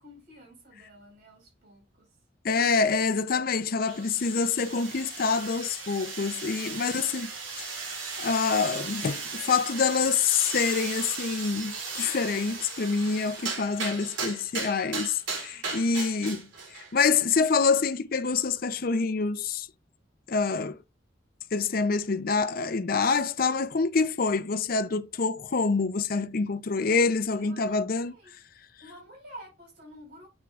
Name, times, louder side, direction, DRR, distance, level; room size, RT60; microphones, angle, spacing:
voice 1, 0.0-2.1 15.9-16.4 27.4-28.3 28.8-30.3, equal, 55° right, 4.3 m, -50 dB
voice 2, 2.4-7.7 8.2-19.7 20.3-20.8 21.5-28.2, left 5 dB, 50° left, 0.5 m, -26 dB
sound 1, 3.8-16.9, right 4 dB, 85° right, 3.0 m, -37 dB
8.2 x 6.3 x 2.4 m
head